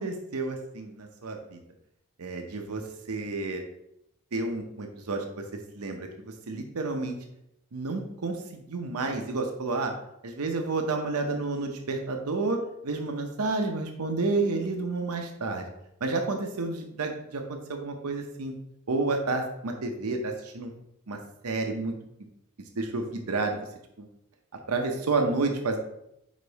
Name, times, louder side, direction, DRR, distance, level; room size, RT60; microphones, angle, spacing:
voice 1, 0.0-1.6 2.2-2.8 3.1-3.6 4.3-5.4 5.7-7.2 7.7-9.9 10.2-15.6 16.0-18.5 18.9-20.7 21.1-21.2 21.4-21.9 22.8-23.7 24.0-24.1 24.7-25.8, right 3 dB, 80° right, 4 dB, 0.8 m, -30 dB
5.1 x 4.6 x 4.0 m, 0.79 s
head